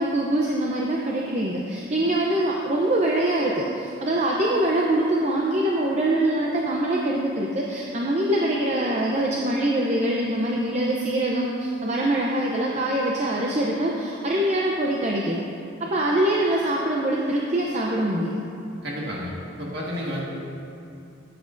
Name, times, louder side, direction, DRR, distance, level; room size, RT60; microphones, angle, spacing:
voice 1, 0.0-15.4 15.8-18.3, right 1 dB, 35° right, -3 dB, 0.6 m, -24 dB
voice 2, 18.8-20.2, equal, 50° right, -4 dB, 1.8 m, -31 dB
13.0 x 8.5 x 2.6 m, 2.6 s
head